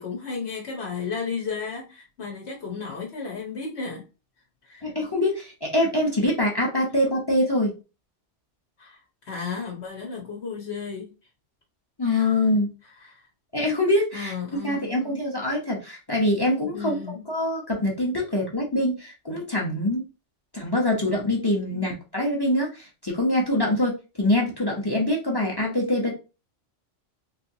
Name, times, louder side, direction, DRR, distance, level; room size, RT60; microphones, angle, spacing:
voice 1, 0.0-4.0 4.6-4.9 8.8-11.1 12.0-12.5 13.0-13.3 14.1-15.2 16.7-17.3 21.7-21.9, left 5 dB, 65° left, 1.1 m, -34 dB
voice 2, 4.8-7.7 12.0-12.7 13.5-14.3 14.6-17.0 17.3-20.0 20.5-23.9 24.2-26.1, left 1 dB, 20° left, 0.8 m, -24 dB
3.3 x 2.9 x 2.7 m
omnidirectional pair, 1.3 m